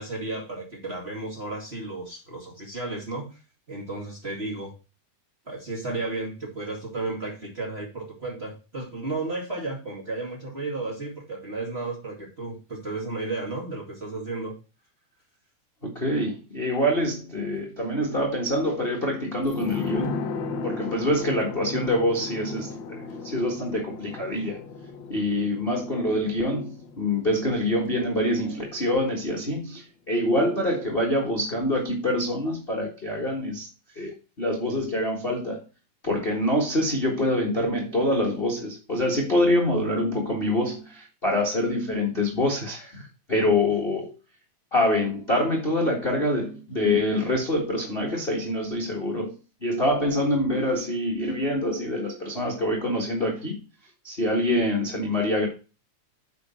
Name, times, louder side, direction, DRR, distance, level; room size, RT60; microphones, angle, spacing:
voice 1, 0.0-3.3 3.7-4.7 5.5-14.5, right 2 dB, 20° right, 2.2 m, -33 dB
voice 2, 15.8-20.1 20.6-24.6 25.1-33.7 33.9-34.1 34.4-35.6 36.0-44.1 44.7-49.3 49.6-53.6 54.0-55.5, left 1 dB, 25° left, 1.5 m, -25 dB
sound 1, 19.5-28.8 29.0-29.1, left 4 dB, 80° left, 1.0 m, -35 dB
9.2 x 5.1 x 4.4 m
omnidirectional pair, 3.4 m